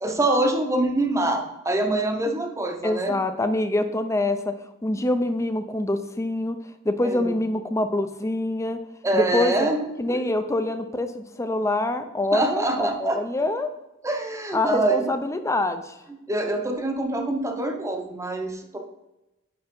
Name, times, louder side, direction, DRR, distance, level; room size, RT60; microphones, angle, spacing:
voice 1, 0.0-3.2 7.0-7.3 9.0-9.9 10.1-10.2 12.3-13.2 14.0-15.1 16.3-18.8, right 2 dB, 15° right, 3 dB, 0.8 m, -25 dB
voice 2, 2.8-4.5 4.8-6.6 6.8-8.8 9.1-9.7 10.0-13.7 14.5-16.0, left 2 dB, 15° left, 9 dB, 0.5 m, -25 dB
5.7 x 5.4 x 5.3 m, 0.96 s
head